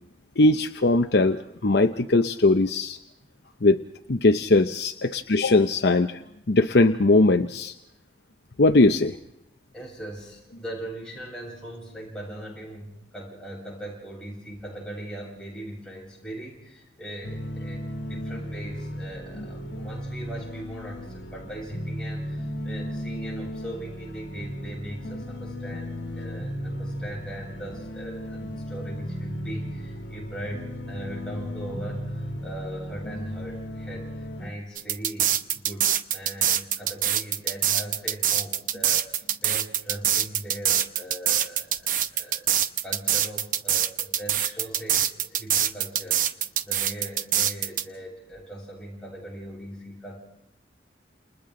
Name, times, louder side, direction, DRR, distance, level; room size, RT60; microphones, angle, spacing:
voice 1, 0.4-3.0 3.6-3.8 4.1-6.2 6.5-7.7 8.6-9.1, left 2 dB, 70° left, 6 dB, 0.8 m, -20 dB
voice 2, 9.7-42.5 42.8-50.2, right 1 dB, 5° left, -5 dB, 7.9 m, -40 dB
sound 1, 17.2-34.5, equal, 85° left, 1.8 m, -35 dB
sound 2, 34.8-47.8, right 10 dB, 45° right, 0.8 m, -24 dB
29.5 x 29.0 x 3.9 m, 0.84 s
head